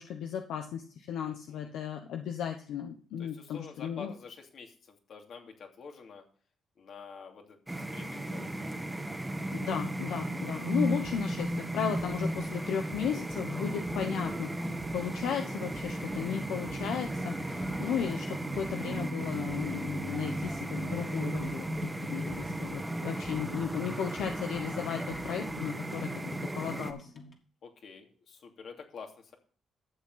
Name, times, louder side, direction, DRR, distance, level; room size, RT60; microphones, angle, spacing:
voice 1, 0.0-4.1 9.5-27.1, left 8 dB, 80° left, 4 dB, 1.0 m, -35 dB
voice 2, 1.2-1.7 3.2-6.3 6.8-8.5 10.4-10.8 27.6-29.3, left 5 dB, 60° left, 2 dB, 2.7 m, -48 dB
sound 1, 7.7-26.9, right 1 dB, 15° right, 1.6 m, -35 dB
sound 2, 11.0-14.4 14.8-17.2 17.6-21.9 22.3-24.7 25.1-25.8, right 1 dB, 20° left, 1.7 m, -53 dB
sound 3, 17.0-27.4, equal, 35° left, 2.7 m, -51 dB
12.5 x 7.6 x 3.9 m, 0.43 s
cardioid pair, 90°, 0 cm